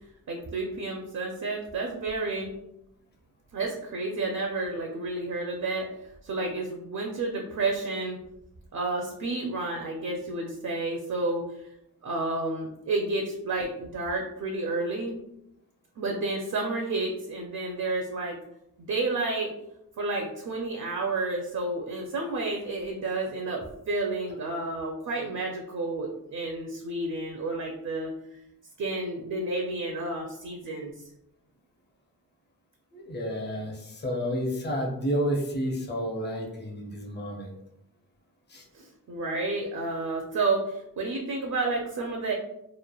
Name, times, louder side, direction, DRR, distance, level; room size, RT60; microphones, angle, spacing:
voice 1, 0.3-2.5 3.5-5.9 6.2-8.2 8.7-11.7 12.0-15.2 16.0-18.4 18.8-19.5 20.0-28.1 28.8-30.9 38.7-42.3, right 2 dB, 55° right, 0 dB, 0.5 m, -30 dB
voice 2, 32.9-37.6 38.5-38.6, equal, 30° left, 0 dB, 0.6 m, -30 dB
3.0 x 2.1 x 2.2 m, 0.81 s
wide cardioid pair, 75°, 36 cm